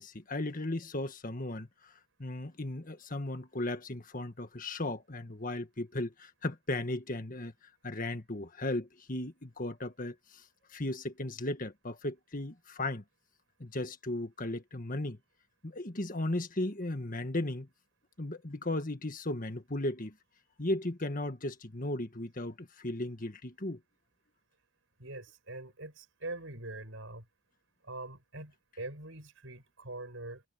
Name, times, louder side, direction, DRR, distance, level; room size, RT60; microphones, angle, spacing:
voice 1, 0.0-1.9 2.2-7.5 7.8-10.4 10.7-13.0 13.6-15.2 15.6-17.7 18.2-20.1 20.6-23.8, left 1 dB, 40° left, 1.8 m, -36 dB
voice 2, 25.0-27.3 27.8-30.4, right 2 dB, 60° right, 7.7 m, -43 dB
head